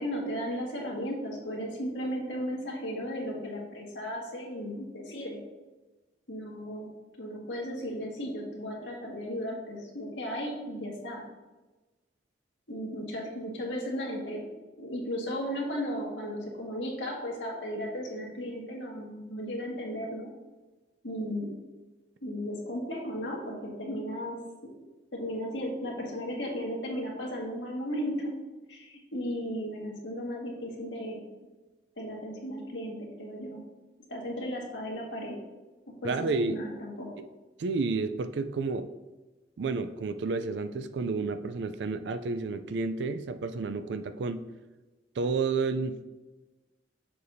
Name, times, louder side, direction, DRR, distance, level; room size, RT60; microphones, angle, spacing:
voice 1, 0.0-5.4 6.3-6.9 7.2-11.2 12.7-14.4 14.8-20.3 21.0-21.5 22.2-24.4 25.1-28.3 28.7-31.2 32.0-33.6 34.1-35.4 36.0-37.1, equal, 90° left, -2 dB, 1.7 m, -35 dB
voice 2, 36.0-36.7 37.2-37.3 37.6-38.9 39.6-44.4 45.2-46.1, right 4 dB, 70° right, 10 dB, 0.4 m, -31 dB
6.8 x 6.7 x 2.7 m, 1.1 s
head